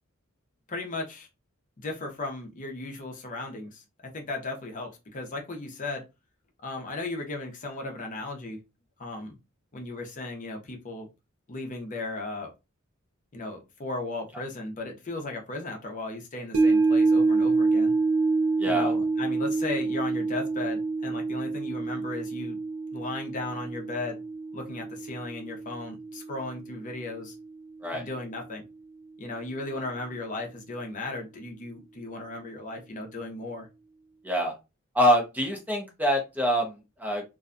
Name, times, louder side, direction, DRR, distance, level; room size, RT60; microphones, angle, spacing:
voice 1, 0.7-1.3 1.8-6.0 6.6-8.6 9.0-9.4 9.7-11.1 11.5-12.5 13.3-17.9 18.6-22.6 22.9-24.2 24.5-27.4 27.9-28.6 29.2-33.7, left 2 dB, 40° left, 2 dB, 0.6 m, -36 dB
sound 1, 16.5-26.9 27.3-27.4, right 3 dB, 85° right, 0.5 m, -27 dB
voice 2, 18.6-18.9 27.8-28.0 34.2-34.5 34.9-37.2, equal, 10° right, 2 dB, 0.5 m, -25 dB
2.6 x 2.2 x 2.5 m, 0.26 s
head